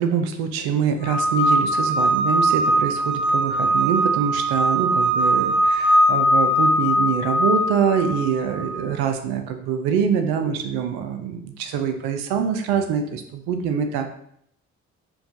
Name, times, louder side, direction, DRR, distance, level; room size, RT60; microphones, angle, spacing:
voice 1, 0.0-14.1, right 7 dB, 80° right, 7 dB, 0.5 m, -24 dB
sound 1, 1.0-8.8, right 1 dB, 15° left, 0.7 m, -20 dB
4.6 x 2.3 x 2.6 m, 0.71 s
hypercardioid pair, 45°, 37 cm